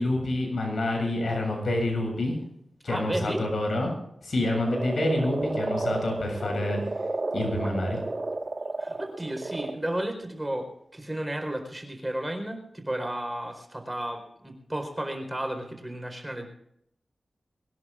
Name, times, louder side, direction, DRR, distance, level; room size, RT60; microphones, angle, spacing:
voice 1, 0.0-2.4 2.8-3.9 4.2-6.8 7.3-8.0, left 1 dB, 75° left, 2 dB, 7.4 m, -27 dB
voice 2, 2.9-3.4 8.8-16.5, right 1 dB, 15° right, 5 dB, 4.4 m, -33 dB
Frog, 4.7-9.7, right 2 dB, 40° right, 1.6 m, -32 dB
23.5 x 19.5 x 2.5 m, 0.73 s
wide cardioid pair, 95°, 0 cm